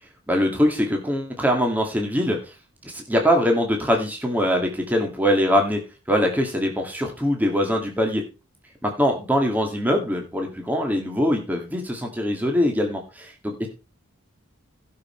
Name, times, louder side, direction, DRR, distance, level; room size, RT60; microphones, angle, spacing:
voice 1, 0.3-2.5 2.8-5.8 6.1-8.2 8.8-13.7, equal, 10° right, 2 dB, 2.0 m, -22 dB
17.0 x 5.7 x 4.4 m, 0.30 s
head